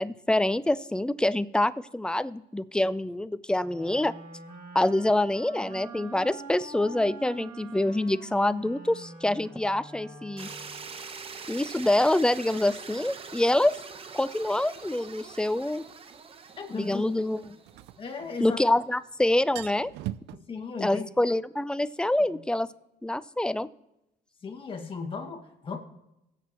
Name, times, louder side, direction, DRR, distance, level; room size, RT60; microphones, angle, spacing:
voice 1, 0.0-4.1 4.7-10.5 11.5-13.7 14.1-15.8 16.7-17.4 18.4-19.9 20.8-22.7 23.0-23.7, left 1 dB, 5° left, 15 dB, 0.4 m, -26 dB
Wind instrument woodwind instrument, 3.6-11.0, right 3 dB, 55° right, 2.3 m, -45 dB
sound 1, 10.4-18.4, right 5 dB, 35° right, 0.9 m, -44 dB
sound 2, 15.0-15.1 17.4-18.7 19.0-19.1 19.4-20.4, right 15 dB, 85° right, 0.4 m, -39 dB
voice 2, 16.6-17.0 18.0-18.6 20.3-21.1 22.3-22.4 24.4-25.8, left 5 dB, 30° left, 3 dB, 1.9 m, -36 dB
20.5 x 8.2 x 3.0 m, 0.88 s
cardioid pair, 110°, 17 cm